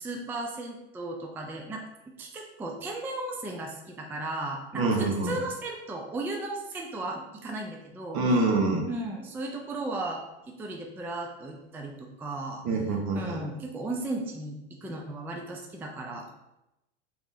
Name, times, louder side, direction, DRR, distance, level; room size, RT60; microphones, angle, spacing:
voice 1, 0.0-1.8 2.2-8.2 8.9-12.6 13.1-16.3, right 2 dB, 5° right, 1 dB, 0.3 m, -35 dB
voice 2, 4.7-5.3 8.1-8.8 12.6-13.4, right 2 dB, 60° right, 1 dB, 1.0 m, -25 dB
3.0 x 2.8 x 3.6 m, 0.91 s
hypercardioid pair, 95°, 33 cm